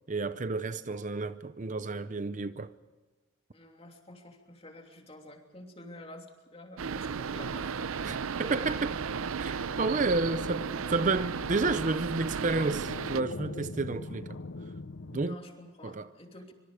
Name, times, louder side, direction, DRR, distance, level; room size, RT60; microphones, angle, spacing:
voice 1, 0.1-2.7 8.1-8.9 9.4-14.4 15.1-15.4 15.8-16.1, right 3 dB, 35° right, 0.6 m, -31 dB
voice 2, 3.5-7.8 9.9-10.1 15.2-16.5, left 1 dB, 25° left, 3.1 m, -49 dB
sound 1, 6.8-13.2, right 5 dB, 80° right, 0.6 m, -34 dB
sound 2, 9.0-15.3, left 2 dB, 60° left, 0.7 m, -44 dB
25.0 x 25.0 x 5.0 m
head